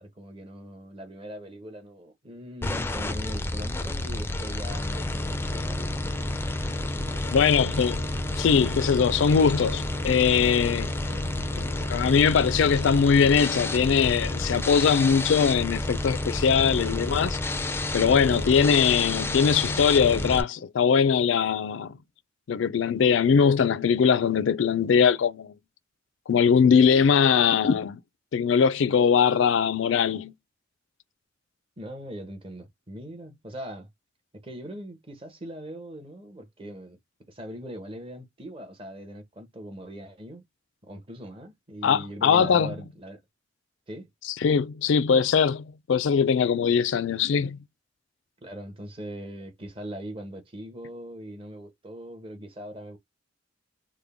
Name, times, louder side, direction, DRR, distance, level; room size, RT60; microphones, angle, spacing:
voice 1, 0.0-6.1 11.1-11.4 18.2-18.4 31.8-33.9 34.3-37.0 37.3-40.4 40.8-43.2 43.9-44.1 48.4-53.0, equal, 30° right, 1.0 m, -40 dB
sound 1, 2.6-20.4, left 2 dB, 10° left, 0.4 m, -30 dB
sound 2, 7.0-12.9, right 1 dB, 50° right, 1.2 m, -47 dB
voice 2, 7.3-8.0 8.4-10.9 11.9-17.4 17.9-22.0 22.5-25.5 26.3-28.0 28.3-30.3 41.8-42.7 44.4-47.6, left 6 dB, 75° left, 0.4 m, -21 dB
3.6 x 2.1 x 3.5 m
head